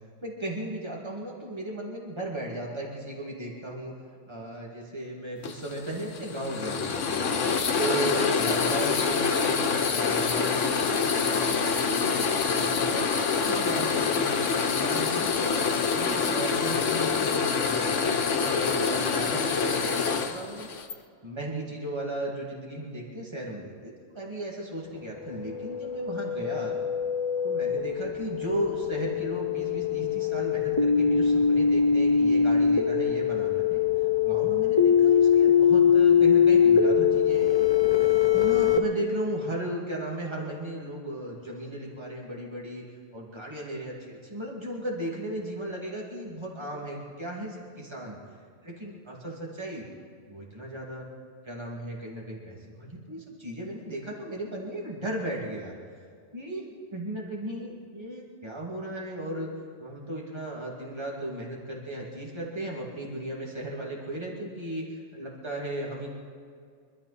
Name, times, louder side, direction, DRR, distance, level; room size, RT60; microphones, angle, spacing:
voice 1, 0.2-3.9 4.3-7.3 7.8-12.2 12.5-20.7 21.2-26.8 27.4-33.8 34.2-37.5 38.3-42.8 43.1-48.2 48.6-49.9 50.3-51.1 51.4-55.7 56.3-59.5 59.8-64.8 65.1-66.1, right 1 dB, 20° right, -3 dB, 2.6 m, -36 dB
sound 1, 5.4-21.0, left 5 dB, 90° left, 1.3 m, -26 dB
sound 2, 25.5-38.8, left 7 dB, 25° left, 0.7 m, -22 dB
25.0 x 12.5 x 4.3 m, 2.1 s
omnidirectional pair, 1.2 m